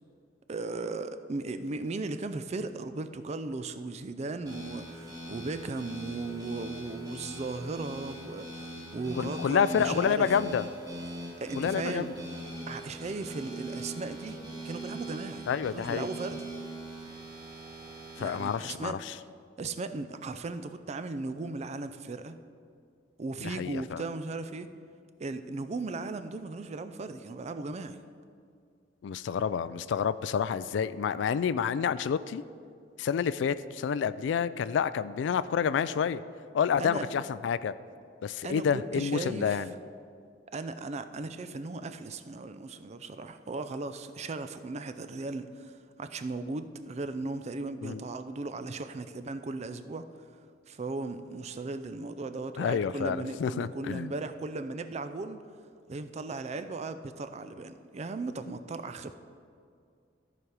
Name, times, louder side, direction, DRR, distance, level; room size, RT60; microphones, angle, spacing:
voice 1, 0.5-10.3 11.4-12.1 12.6-14.4 14.6-15.4 15.7-16.5 18.2-19.0 19.6-22.4 23.2-24.7 25.2-28.0 36.8-37.1 38.4-39.6 40.5-45.7 46.0-50.1 50.7-55.4 55.9-59.2, right 3 dB, 35° right, 10 dB, 0.4 m, -37 dB
sound 1, 4.5-18.6, right 1 dB, 20° right, 2.4 m, -41 dB
voice 2, 9.2-10.7 11.6-12.1 15.5-16.1 18.2-19.1 23.4-24.0 29.0-32.4 33.0-36.2 36.5-37.7 38.2-39.7 47.8-48.0 52.6-54.1, left 7 dB, 70° left, 15 dB, 0.3 m, -29 dB
14.0 x 5.1 x 4.7 m, 2.3 s
head